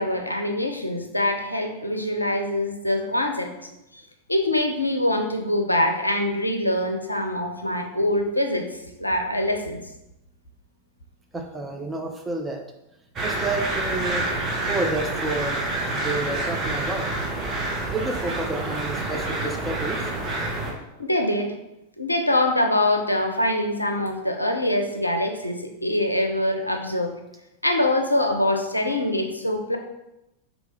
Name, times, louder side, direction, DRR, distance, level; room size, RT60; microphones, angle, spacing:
voice 1, 0.0-3.5 4.3-8.7 9.0-9.8 21.0-21.5 22.0-27.1 27.6-29.8, left 1 dB, 85° left, 4 dB, 0.5 m, -24 dB
voice 2, 11.3-12.6 13.2-14.3 14.7-15.6 15.9-17.1 17.9-20.0, right 2 dB, 10° right, 2 dB, 0.4 m, -30 dB
sound 1, 13.2-20.7, right 2 dB, 25° right, 0.8 m, -28 dB
4.5 x 2.7 x 4.2 m, 0.92 s
figure-of-eight pair, 90°, 0 cm